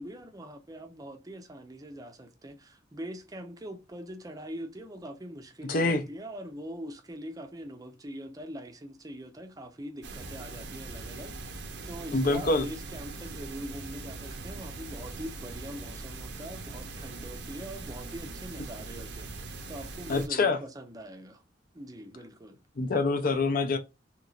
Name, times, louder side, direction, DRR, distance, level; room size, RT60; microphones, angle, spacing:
voice 1, 0.0-21.4 21.7-22.6, equal, 20° right, 0.5 m, -43 dB
voice 2, 5.6-6.0 12.1-12.7 20.1-20.6 22.8-23.8, left 3 dB, 50° left, 0.6 m, -25 dB
sound 1, 10.0-20.3, right 3 dB, 65° right, 0.6 m, -41 dB
3.1 x 3.0 x 2.4 m
head